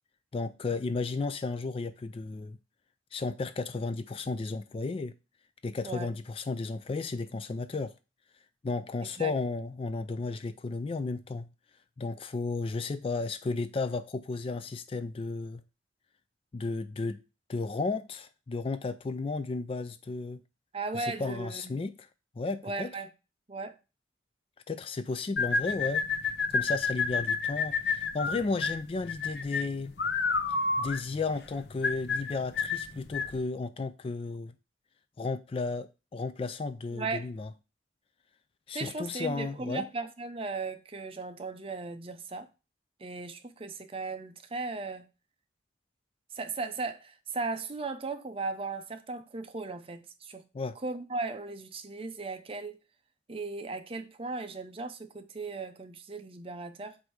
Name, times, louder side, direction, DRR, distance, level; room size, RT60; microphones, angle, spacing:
voice 1, 0.3-2.6 3.1-5.1 5.6-7.9 8.6-11.5 12.0-15.6 16.5-17.2 17.5-20.4 20.9-22.1 22.4-22.9 24.7-26.0 26.5-29.9 30.8-34.5 35.2-37.5 38.7-39.8 50.5-50.8, left 3 dB, 30° left, 0.3 m, -33 dB
voice 2, 20.7-21.9 22.6-23.1 23.5-23.8 36.9-37.3 38.7-42.5 43.0-45.1 46.3-50.4 50.8-52.8 53.3-57.0, right 3 dB, 30° right, 0.6 m, -37 dB
sound 1, 25.4-33.4, left 4 dB, 65° left, 0.7 m, -30 dB
7.8 x 2.7 x 4.7 m
head